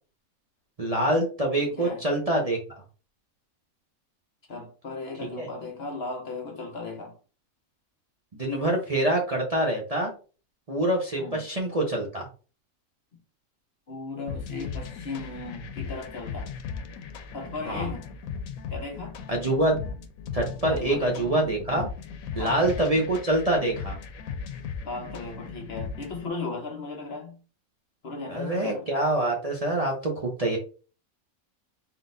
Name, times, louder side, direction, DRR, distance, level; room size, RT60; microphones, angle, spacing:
voice 1, 0.8-2.8 5.4-5.5 8.3-10.1 10.7-12.3 17.7-17.9 19.3-19.8 20.3-21.9 22.4-24.0 28.3-30.6, right 1 dB, 35° right, 0.7 m, -25 dB
voice 2, 1.6-2.0 4.5-7.2 11.2-11.4 13.9-16.5 17.3-18.1 18.7-19.2 20.7-21.3 22.4-22.6 24.8-27.4 28.0-28.9, left 3 dB, 50° left, 1.0 m, -36 dB
sound 1, 14.3-26.3, left 6 dB, 80° left, 1.1 m, -37 dB
3.9 x 3.8 x 2.6 m
omnidirectional pair, 1.5 m